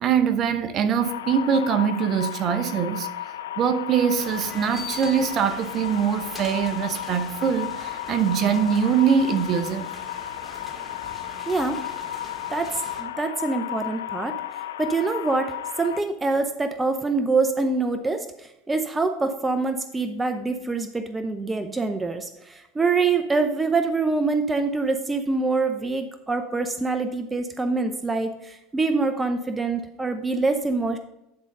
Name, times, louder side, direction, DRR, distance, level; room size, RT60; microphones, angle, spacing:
voice 1, 0.0-3.1 3.6-9.9, right 7 dB, 45° right, 0.8 m, -23 dB
sound 1, 1.0-16.0, left 11 dB, 85° left, 0.4 m, -34 dB
sound 2, 4.1-13.0, left 2 dB, 10° left, 2.1 m, -42 dB
voice 2, 11.5-11.8 12.5-12.7 13.0-14.4 14.8-31.0, right 3 dB, 15° right, 0.6 m, -25 dB
11.0 x 3.9 x 5.3 m
hypercardioid pair, 95°, 0 cm